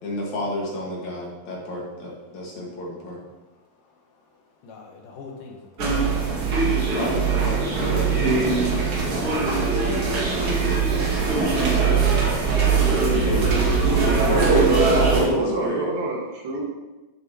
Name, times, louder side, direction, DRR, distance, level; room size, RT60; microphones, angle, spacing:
voice 1, 0.0-3.2 6.9-12.3 13.1-13.5 14.0-15.9, equal, 55° left, -4 dB, 3.1 m, -30 dB
voice 2, 3.5-7.0, left 4 dB, 70° left, 1 dB, 2.6 m, -47 dB
sound 1, 5.8-15.3, right 4 dB, 45° right, 2.2 m, -21 dB
voice 3, 14.3-16.7, right 3 dB, 75° right, -3 dB, 3.7 m, -24 dB
12.0 x 7.7 x 3.1 m, 1.1 s
omnidirectional pair, 4.1 m